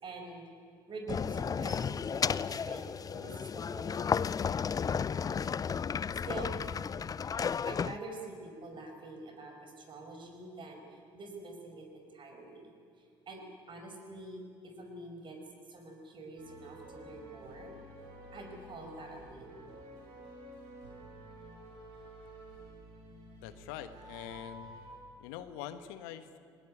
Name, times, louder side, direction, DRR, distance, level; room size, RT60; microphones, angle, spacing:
voice 1, 0.0-0.5 0.9-4.0 6.3-6.6 7.7-12.7 13.0-15.4 15.7-17.7 18.3-19.6, right 2 dB, 45° right, 3 dB, 5.7 m, -46 dB
sound 1, 1.1-8.0, left 6 dB, 30° left, 0.6 m, -33 dB
sound 2, 16.4-24.9, right 1 dB, 80° right, 5.6 m, -51 dB
voice 2, 23.4-24.7 25.2-26.4, left 10 dB, 75° left, 11 dB, 1.3 m, -44 dB
19.5 x 19.0 x 9.9 m, 2.4 s
hypercardioid pair, 60°, 12 cm